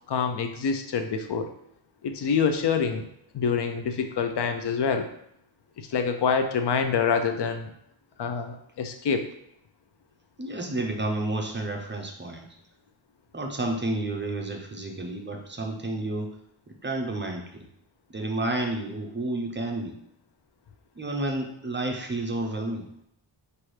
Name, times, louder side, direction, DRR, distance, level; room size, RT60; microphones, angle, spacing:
voice 1, 0.1-1.5 2.0-3.1 3.3-5.1 5.8-7.7 8.2-9.3, left 6 dB, 60° left, 7 dB, 0.6 m, -26 dB
voice 2, 10.4-12.4 13.3-16.3 16.8-17.6 18.1-20.0 21.0-22.9, right 2 dB, 25° right, 2 dB, 0.5 m, -30 dB
5.7 x 2.6 x 3.2 m, 0.74 s
wide cardioid pair, 125°, 47 cm